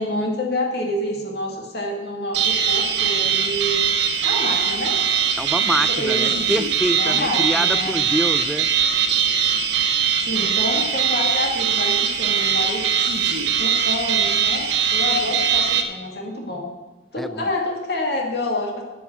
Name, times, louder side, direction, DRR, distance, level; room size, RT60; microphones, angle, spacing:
voice 1, 0.0-3.8 4.2-5.0 5.9-6.4 7.0-8.0 10.2-12.8 13.6-16.7 17.1-18.8, left 1 dB, 60° left, 0 dB, 2.1 m, -27 dB
sound 1, 2.3-15.8, right 7 dB, 75° right, 1.4 m, -21 dB
voice 2, 5.4-8.7 17.2-17.5, equal, ahead, 12 dB, 0.4 m, -26 dB
9.5 x 9.5 x 7.2 m, 1.3 s
head